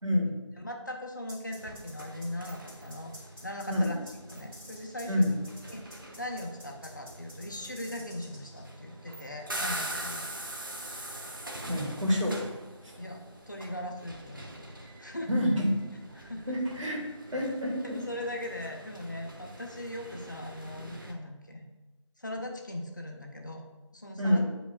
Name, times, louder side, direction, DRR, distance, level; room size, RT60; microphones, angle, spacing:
voice 1, 0.6-3.1 3.4-4.0 4.3-5.3 5.7-10.3 13.0-13.2 13.5-14.5 14.8-15.3 16.2-16.6 17.8-21.6 22.2-23.6 23.9-24.4, left 1 dB, 35° left, 2 dB, 0.6 m, -39 dB
sound 1, 1.3-8.6, equal, 10° right, 2.1 m, -49 dB
sound 2, 1.6-21.1, right 1 dB, 40° right, 0.8 m, -43 dB
voice 2, 11.7-12.4 15.3-15.7 16.5-17.0 17.3-17.7 24.2-24.4, left 1 dB, 70° right, -1 dB, 2.0 m, -27 dB
9.4 x 5.0 x 2.3 m, 1.1 s
figure-of-eight pair, 170°, 16 cm